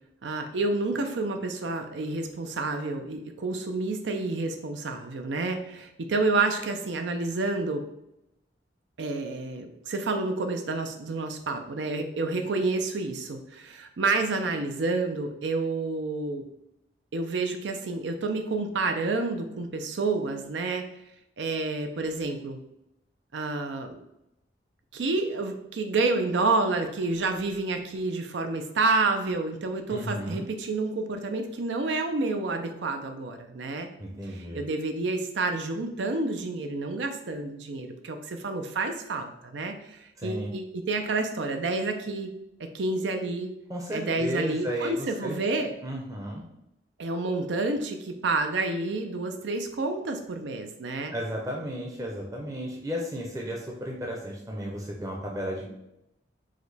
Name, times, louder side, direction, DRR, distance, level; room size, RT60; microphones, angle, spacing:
voice 1, 0.2-7.8 9.0-16.4 17.1-20.9 21.4-22.6 23.3-24.0 24.9-33.9 34.2-42.3 42.6-43.5 43.9-45.7 47.0-51.1, right 3 dB, 90° right, 6 dB, 0.5 m, -29 dB
voice 2, 29.9-30.5 34.0-34.6 40.2-40.5 43.7-45.4 45.8-46.4 51.1-55.7, equal, 20° right, -1 dB, 0.6 m, -34 dB
4.9 x 2.2 x 4.0 m, 0.85 s
head